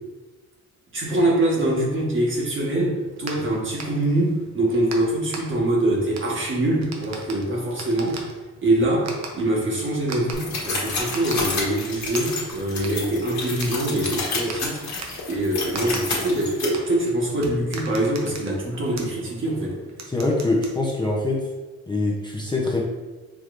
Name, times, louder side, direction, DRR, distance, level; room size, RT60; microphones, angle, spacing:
voice 1, 0.9-8.2 8.6-14.8 15.3-19.8, right 1 dB, 40° right, -3 dB, 1.3 m, -24 dB
sound 1, 3.0-21.4, right 3 dB, 60° right, 0.8 m, -41 dB
sound 2, 10.3-16.6, left 4 dB, 65° left, 1.2 m, -29 dB
voice 2, 20.1-21.5 21.9-22.8, left 2 dB, 15° left, -3 dB, 0.6 m, -24 dB
4.9 x 3.0 x 2.5 m, 1.2 s
cardioid pair, 90°, 30 cm